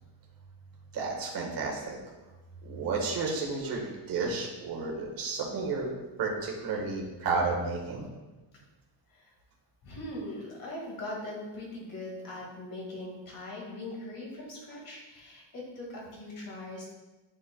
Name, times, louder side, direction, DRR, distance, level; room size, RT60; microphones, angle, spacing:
voice 1, 0.9-2.0 2.6-5.9 6.2-8.1, right 4 dB, 50° right, -1 dB, 1.5 m, -32 dB
voice 2, 9.8-16.9, left 1 dB, 45° left, -3 dB, 1.8 m, -40 dB
9.9 x 4.6 x 2.2 m, 1.1 s
cardioid pair, 165°, 45 cm